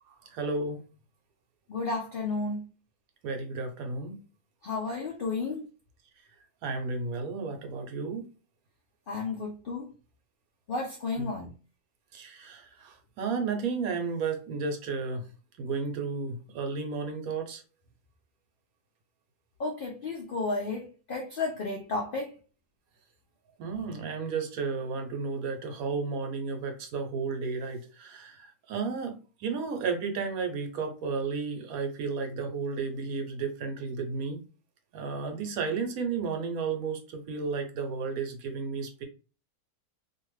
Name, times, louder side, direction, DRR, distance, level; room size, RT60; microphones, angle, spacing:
voice 1, 0.3-0.8 3.2-4.2 6.6-8.2 11.2-11.3 12.1-15.3 15.6-17.6 23.6-34.4 34.9-39.0, right 4 dB, 70° right, 1.1 m, -33 dB
voice 2, 1.7-2.7 4.6-5.6 9.1-9.9 10.7-11.5 19.6-22.3, left 3 dB, 85° left, 0.4 m, -32 dB
2.6 x 2.4 x 3.1 m
omnidirectional pair, 1.6 m